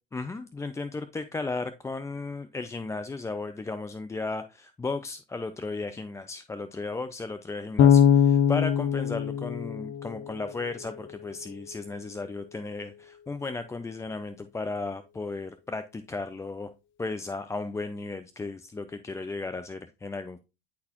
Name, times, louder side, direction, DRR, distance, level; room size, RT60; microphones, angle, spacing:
voice 1, 0.1-16.7 17.0-20.4, left 3 dB, 10° left, 10 dB, 0.4 m, -35 dB
Bass guitar, 7.8-10.8, left 8 dB, 40° left, 0.7 m, -22 dB
9.5 x 4.1 x 2.9 m, 0.28 s
hypercardioid pair, 95°, 31 cm